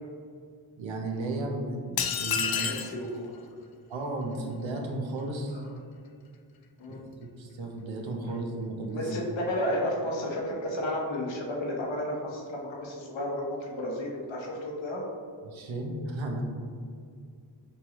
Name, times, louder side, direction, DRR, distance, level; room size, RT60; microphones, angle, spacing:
voice 1, 0.8-2.7 3.9-5.6 6.9-9.1 15.4-16.4, right 2 dB, 80° right, 1 dB, 0.8 m, -34 dB
sound 1, 2.0-3.0, left 7 dB, 55° left, 0.5 m, -28 dB
voice 2, 2.6-3.4 5.5-5.6 6.8-7.0 8.9-15.0, left 1 dB, 75° left, -2 dB, 1.1 m, -32 dB
5.3 x 3.0 x 3.0 m, 2.2 s
cardioid pair, 55°, 46 cm